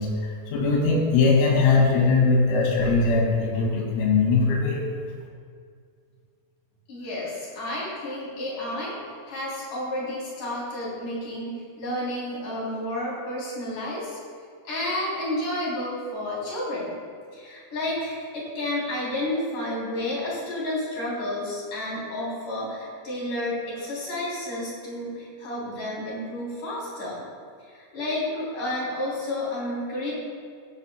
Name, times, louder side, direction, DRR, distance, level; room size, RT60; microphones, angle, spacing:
voice 1, 0.0-4.8, left 4 dB, 85° left, -3 dB, 4.9 m, -21 dB
voice 2, 6.9-14.2 14.6-16.9 17.3-27.2 27.7-30.1, left 1 dB, 40° left, -6 dB, 4.2 m, -31 dB
16.0 x 11.5 x 2.2 m, 2.1 s
omnidirectional pair, 6.0 m